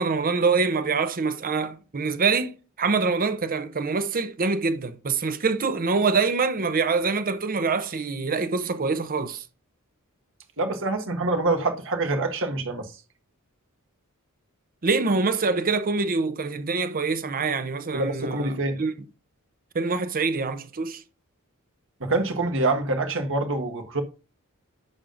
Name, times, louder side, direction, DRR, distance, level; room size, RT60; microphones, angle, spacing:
voice 1, 0.0-9.4 14.8-18.9 19.7-21.0, right 4 dB, 40° right, 0.7 m, -25 dB
voice 2, 10.6-12.9 17.9-18.8 22.0-24.0, right 2 dB, 60° right, 1.4 m, -25 dB
10.5 x 7.2 x 2.5 m
head